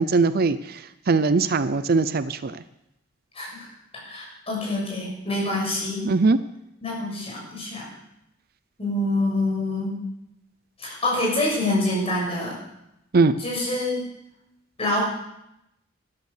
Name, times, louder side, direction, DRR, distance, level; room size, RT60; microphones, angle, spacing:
voice 1, 0.0-2.6 6.0-6.4 13.1-13.3, right 4 dB, 50° right, 14 dB, 0.5 m, -21 dB
voice 2, 3.3-3.7 3.9-6.0 6.8-7.9 8.8-9.9 10.8-12.6 13.4-14.0 14.8-15.1, left 1 dB, 30° left, -2 dB, 6.6 m, -26 dB
13.0 x 12.5 x 6.7 m, 0.83 s
head